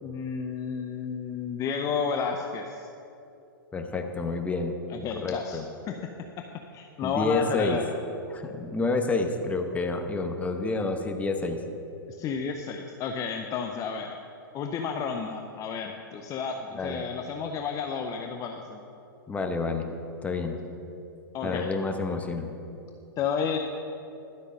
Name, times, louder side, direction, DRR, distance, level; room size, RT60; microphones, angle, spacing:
voice 1, 0.0-2.9 4.9-5.6 5.9-6.0 6.7-7.8 12.1-14.1 14.5-18.8 21.3-21.7 23.2-23.6, left 6 dB, 30° left, 4 dB, 0.6 m, -31 dB
voice 2, 3.7-4.8 5.1-5.7 7.0-7.8 8.3-11.6 16.8-17.0 19.3-19.9 20.2-20.6 21.4-22.5, left 3 dB, 10° left, 5 dB, 0.9 m, -29 dB
12.0 x 8.1 x 5.3 m, 2.7 s
hypercardioid pair, 120°, 12 cm